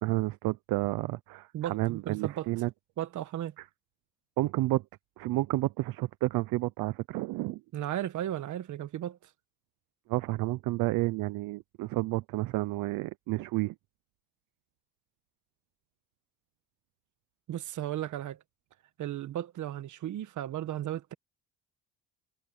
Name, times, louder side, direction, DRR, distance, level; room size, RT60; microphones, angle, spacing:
voice 1, 0.0-2.7 4.4-4.8 5.2-7.6 10.1-13.7, right 19 dB, 75° right, 0.7 m, -30 dB
voice 2, 1.5-2.5 3.0-3.5 7.7-9.3 17.5-18.4 19.0-21.1, right 12 dB, 55° right, 1.5 m, -35 dB
cardioid pair, 110°, 35 cm